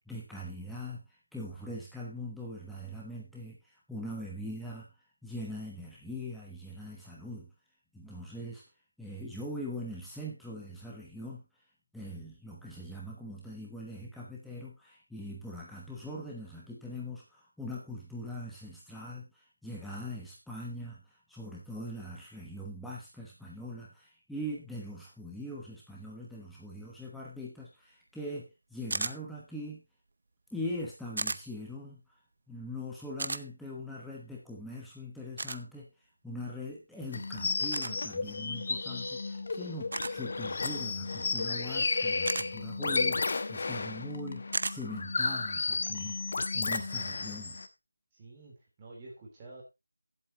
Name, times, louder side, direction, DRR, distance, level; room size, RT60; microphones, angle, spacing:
voice 1, 0.1-1.0 1.3-3.6 3.9-4.9 5.2-7.5 7.9-8.6 9.0-11.4 11.9-19.2 19.6-21.0 21.3-29.8 30.5-32.0 32.5-35.9 36.2-46.2 46.5-47.6, left 1 dB, ahead, -5 dB, 1.0 m, -41 dB
sound 1, 28.9-29.2 31.2-31.4 33.2-33.4 35.4-35.6 37.7-37.9 39.9-40.2 42.2-42.5 44.5-44.8, right 3 dB, 50° right, 0.6 m, -33 dB
sound 2, 37.1-47.7, left 3 dB, 40° left, 1.0 m, -33 dB
voice 2, 48.1-49.6, right 2 dB, 15° right, -4 dB, 3.7 m, -49 dB
15.5 x 8.0 x 2.9 m, 0.24 s
figure-of-eight pair, 170°, 0 cm